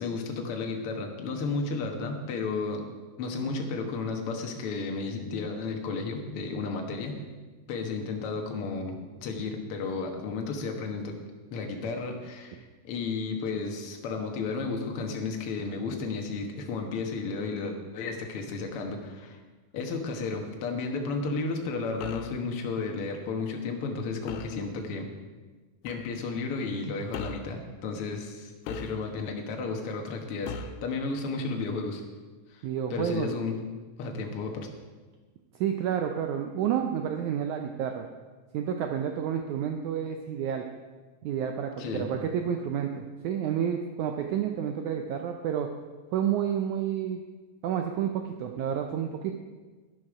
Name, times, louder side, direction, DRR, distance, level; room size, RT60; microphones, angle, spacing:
voice 1, 0.0-2.8 3.2-7.2 7.7-8.9 9.2-11.2 11.5-19.4 19.7-25.1 25.8-32.0 32.5-33.5 34.0-34.7 41.8-42.2, left 4 dB, 55° left, 3 dB, 1.7 m, -33 dB
sound 1, 22.0-22.4 24.3-24.6 25.9-26.1 27.1-27.5 28.7-29.3 30.5-30.9, left 6 dB, 80° left, 2.1 m, -39 dB
voice 2, 32.6-33.3 35.6-38.1 38.5-40.7 41.2-45.7 46.1-47.2 47.6-49.3, right 9 dB, 75° right, 4 dB, 1.8 m, -30 dB
12.0 x 11.0 x 4.9 m, 1.3 s
omnidirectional pair, 4.1 m